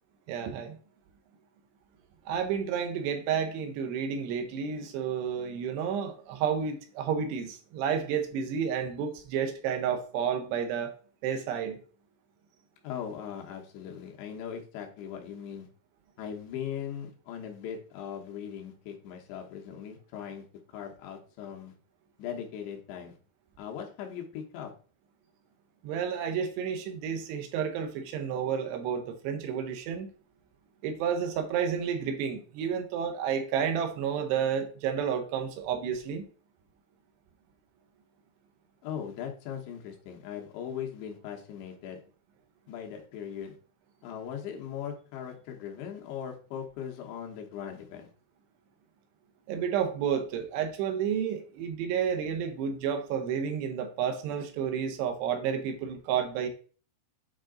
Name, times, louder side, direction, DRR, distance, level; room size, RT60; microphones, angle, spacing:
voice 1, 0.3-0.8 2.3-10.9 11.2-11.8 25.8-30.1 30.8-36.2 49.5-56.5, right 7 dB, 80° right, 6 dB, 2.9 m, -31 dB
voice 2, 12.8-15.7 16.2-20.4 20.7-21.7 22.2-23.2 23.6-24.7 38.8-42.0 42.7-43.6 44.0-48.1, left 8 dB, 80° left, 1 dB, 3.3 m, -39 dB
8.8 x 3.8 x 3.8 m, 0.40 s
omnidirectional pair, 5.0 m